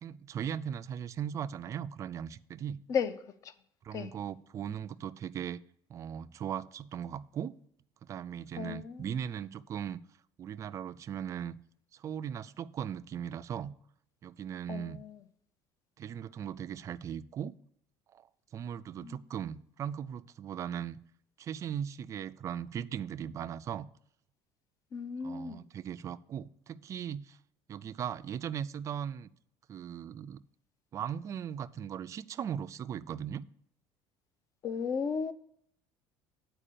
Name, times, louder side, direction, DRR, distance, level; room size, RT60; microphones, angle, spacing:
voice 1, 0.0-2.8 3.8-5.6 5.9-7.6 8.0-10.0 10.4-11.6 11.9-13.7 14.2-15.0 16.0-17.5 18.1-18.3 18.5-21.0 21.4-23.9 25.2-27.4 27.7-29.3 29.7-30.4 30.9-33.4, right 9 dB, 30° right, 0.3 m, -38 dB
voice 2, 8.6-9.0 14.7-15.2 19.0-19.2 24.9-25.6 34.6-35.3, left 6 dB, 30° left, 0.5 m, -34 dB
8.7 x 4.6 x 6.7 m
cardioid pair, 155°, 10 cm